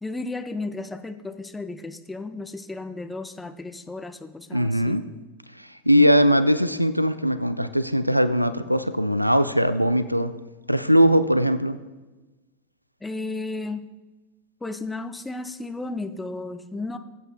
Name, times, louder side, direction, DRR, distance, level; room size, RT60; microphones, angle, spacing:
voice 1, 0.0-5.0 13.0-13.9 14.6-17.0, left 3 dB, 10° left, 8 dB, 0.6 m, -34 dB
voice 2, 4.5-5.0 5.6-10.3 10.7-11.8, equal, 90° right, 13 dB, 0.4 m, -20 dB
18.0 x 8.2 x 2.2 m, 1.2 s
figure-of-eight pair, 90°, 0 cm